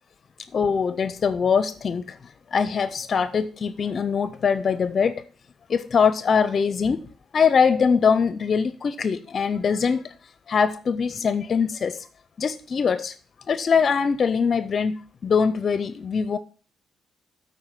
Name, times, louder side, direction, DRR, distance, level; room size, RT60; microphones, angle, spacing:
voice 1, 0.5-2.2 2.5-5.2 5.7-7.0 7.3-10.1 10.5-12.1 12.4-13.1 13.5-16.4, left 6 dB, 50° left, 0.5 m, -22 dB
8.0 x 4.3 x 6.9 m
cardioid pair, 90°, 0 cm